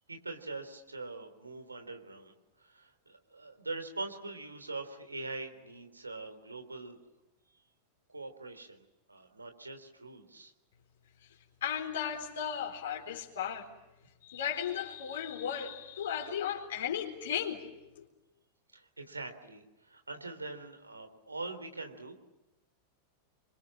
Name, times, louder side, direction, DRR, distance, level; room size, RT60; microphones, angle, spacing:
voice 1, 0.1-7.0 8.1-10.5 18.7-22.1, right 3 dB, 80° right, 7 dB, 3.6 m, -43 dB
voice 2, 11.6-13.7 14.2-17.6 18.0-18.1, left 8 dB, 60° left, -1 dB, 4.2 m, -35 dB
28.5 x 25.0 x 7.6 m, 1.0 s
figure-of-eight pair, 90°, 0 cm